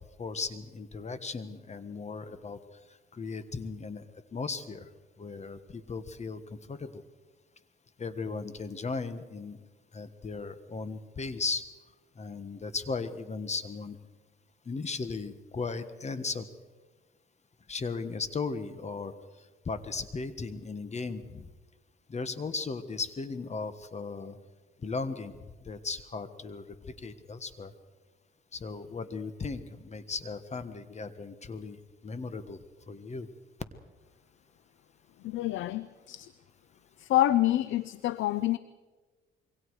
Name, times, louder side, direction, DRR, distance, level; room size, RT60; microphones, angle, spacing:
voice 1, 0.2-2.6 3.1-4.0 4.3-4.9 5.2-7.0 8.0-9.6 9.9-11.6 12.2-14.0 14.6-16.5 17.7-19.1 19.6-21.5 22.1-24.4 24.8-25.3 25.6-27.7 28.5-32.6 32.9-33.3, left 4 dB, 35° left, 12 dB, 1.5 m, -36 dB
voice 2, 35.2-36.3 37.0-38.6, left 14 dB, 75° left, 16 dB, 0.6 m, -27 dB
26.5 x 23.5 x 4.9 m, 1.3 s
cardioid pair, 90°, 20 cm